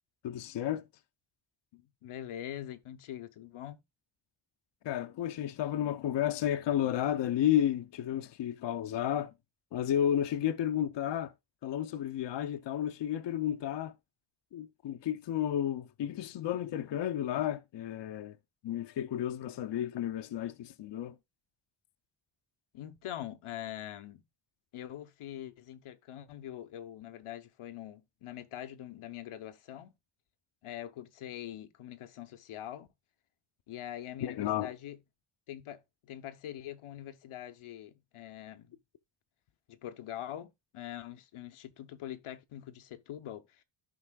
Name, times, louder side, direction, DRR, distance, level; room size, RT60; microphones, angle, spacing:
voice 1, 0.2-0.8 4.8-9.3 9.7-11.3 11.6-13.9 14.5-18.4 18.6-21.2 34.2-34.7, left 11 dB, 60° left, 0.7 m, -32 dB
voice 2, 1.7-3.8 22.7-24.2 24.7-29.9 30.6-32.9 33.7-35.0 35.5-38.7 39.7-43.6, left 12 dB, 85° left, 0.9 m, -43 dB
13.5 x 5.5 x 2.3 m
wide cardioid pair, 125°, 48 cm